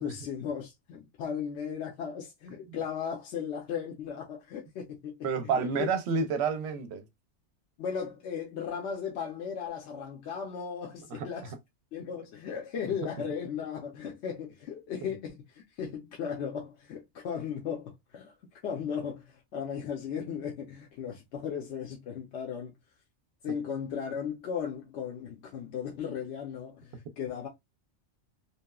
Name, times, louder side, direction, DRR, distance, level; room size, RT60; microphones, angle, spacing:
voice 1, 0.0-5.9 7.8-11.5 11.9-22.8 23.4-27.5, left 7 dB, 75° left, 0.9 m, -36 dB
voice 2, 5.2-7.0 11.1-11.3, right 5 dB, 70° right, 0.8 m, -29 dB
2.9 x 2.1 x 2.2 m
omnidirectional pair, 1.2 m